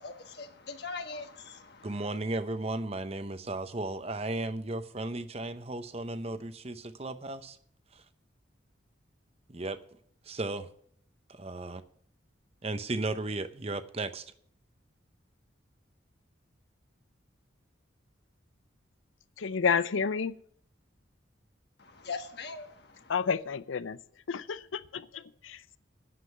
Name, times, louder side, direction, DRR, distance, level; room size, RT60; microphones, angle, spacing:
voice 1, 0.0-2.1 21.8-23.1, left 4 dB, 55° left, 1.4 m, -42 dB
voice 2, 1.8-7.6 9.5-9.8 10.3-10.7 11.4-11.8 12.6-14.2, right 2 dB, 30° right, 0.7 m, -35 dB
voice 3, 19.4-20.4 23.1-24.0 24.3-25.8, left 6 dB, 85° left, 0.6 m, -30 dB
9.5 x 7.6 x 8.1 m
head